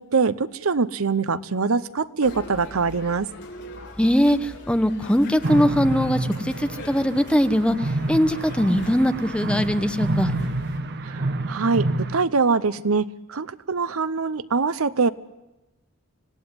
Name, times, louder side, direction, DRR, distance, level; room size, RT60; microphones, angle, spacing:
voice 1, 0.0-3.3 11.1-11.2 11.5-15.1, right 4 dB, 75° right, 16 dB, 0.8 m, -23 dB
sound 1, 2.2-10.8, left 1 dB, 60° left, 4.3 m, -41 dB
voice 2, 4.0-7.8 8.1-10.3, equal, 5° left, 9 dB, 1.0 m, -21 dB
sound 2, 5.4-12.2, right 2 dB, 50° right, 1.1 m, -28 dB
26.0 x 17.5 x 9.7 m, 1.0 s
head